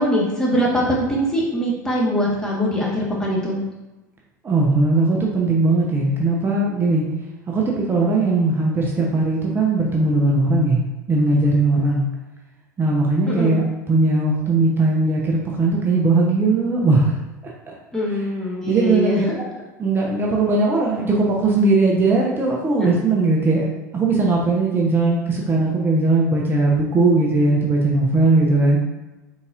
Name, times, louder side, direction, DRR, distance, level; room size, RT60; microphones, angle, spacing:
voice 1, 0.0-3.6 13.2-13.6 17.9-19.4 22.8-22.9, equal, 5° left, -5 dB, 1.5 m, -22 dB
voice 2, 4.4-7.0 7.5-10.8 11.1-12.0 12.8-17.7 18.7-19.3 19.8-23.7 23.9-28.8, right 2 dB, 20° right, -2 dB, 0.8 m, -19 dB
4.1 x 4.0 x 2.5 m, 1.1 s
figure-of-eight pair, 80°, 10 cm